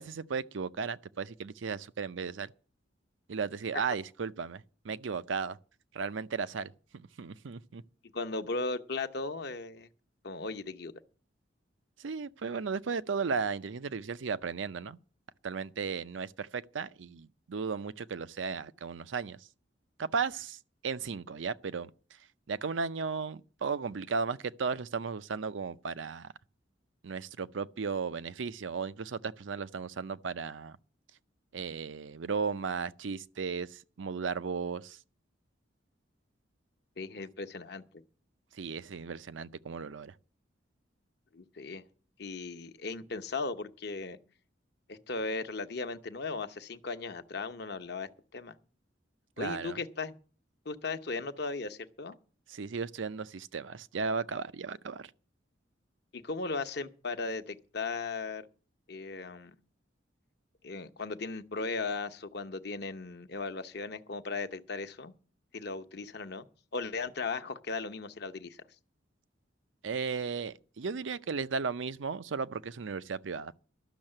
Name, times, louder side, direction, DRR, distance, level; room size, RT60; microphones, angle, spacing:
voice 1, 0.0-2.5 3.3-5.6 5.9-7.8 12.0-15.0 15.4-19.4 20.0-21.9 22.5-26.3 27.0-30.8 31.5-35.0 38.5-40.1 49.4-49.8 52.5-55.1 69.8-73.6, right 5 dB, 80° right, 0.6 m, -35 dB
voice 2, 8.1-9.9 10.2-10.9 37.0-37.8 41.3-41.8 42.2-44.2 44.9-48.5 49.4-50.1 50.6-52.2 56.1-58.4 58.9-59.5 60.6-65.1 65.5-66.5 66.7-68.6, left 3 dB, 60° left, 0.9 m, -37 dB
12.0 x 6.5 x 8.8 m
head